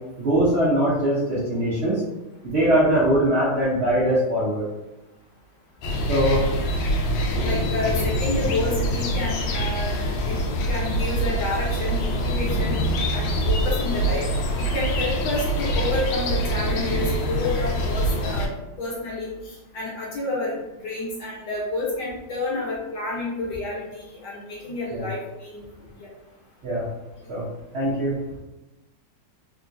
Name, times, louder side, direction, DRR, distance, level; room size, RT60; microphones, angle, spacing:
voice 1, 0.2-2.0 2.4-4.6 6.1-6.5 24.9-25.1 26.6-26.9 27.3-27.4 27.7-28.1, right 1 dB, 80° right, -9 dB, 0.5 m, -21 dB
sound 1, 5.8-18.5, equal, 80° left, 1.3 m, -24 dB
voice 2, 7.4-10.4 10.7-12.8 13.1-14.2 14.6-18.5 18.8-20.5 20.8-25.6 26.0-26.1, left 2 dB, 60° left, -5 dB, 1.4 m, -29 dB
3.6 x 2.3 x 2.6 m, 1.0 s
omnidirectional pair, 2.3 m